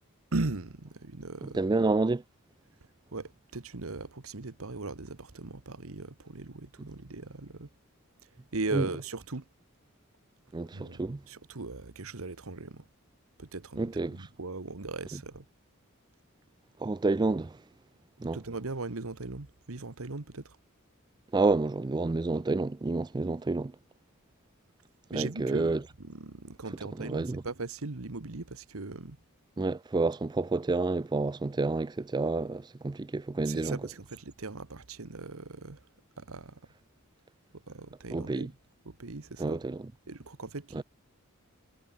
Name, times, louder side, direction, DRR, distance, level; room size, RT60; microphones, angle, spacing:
voice 1, 0.3-1.6 3.1-7.7 8.5-9.4 10.7-12.8 13.4-15.4 18.3-20.6 25.1-29.2 33.5-35.8 36.2-36.6 37.5-38.5 38.8-39.6 40.1-40.8, right 3 dB, 80° right, 1.3 m, -38 dB
voice 2, 1.4-2.2 8.7-8.9 10.5-11.2 13.8-14.3 15.1-15.2 16.8-17.6 18.2-18.4 21.3-23.7 25.1-25.8 27.0-27.4 29.6-33.8 38.1-38.5 39.4-39.9 40.7-40.8, right 3 dB, 20° right, 0.3 m, -29 dB
head